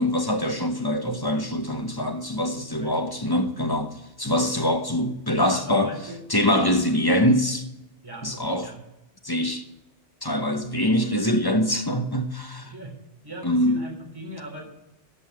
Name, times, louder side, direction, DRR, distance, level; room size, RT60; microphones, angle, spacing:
voice 1, 0.0-3.9 4.2-5.9 6.3-7.6 8.2-8.7 9.2-9.6 10.2-12.7 13.4-13.8, left 1 dB, 20° left, 0.9 m, -24 dB
voice 2, 2.5-3.0 5.5-6.2 6.8-7.0 8.0-8.3 8.6-8.8 12.6-12.9 13.2-14.7, right 1 dB, 20° right, 3.6 m, -39 dB
13.0 x 5.5 x 9.4 m
omnidirectional pair, 1.2 m